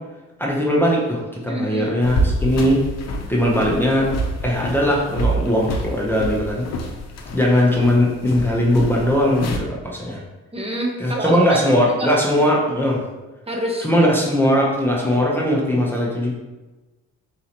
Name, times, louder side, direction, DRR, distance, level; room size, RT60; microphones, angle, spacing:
voice 1, 0.4-2.8 3.3-4.1 4.4-6.7 7.3-10.2 11.0-13.0 13.8-16.3, equal, 5° left, -4 dB, 0.8 m, -19 dB
voice 2, 1.4-2.0 10.5-12.4 13.5-13.9 15.0-15.2, right 1 dB, 20° right, 0 dB, 1.0 m, -28 dB
sound 1, 2.0-9.6, right 1 dB, 60° left, 0.7 m, -27 dB
4.1 x 3.8 x 2.9 m, 1.2 s
cardioid pair, 90°, 30 cm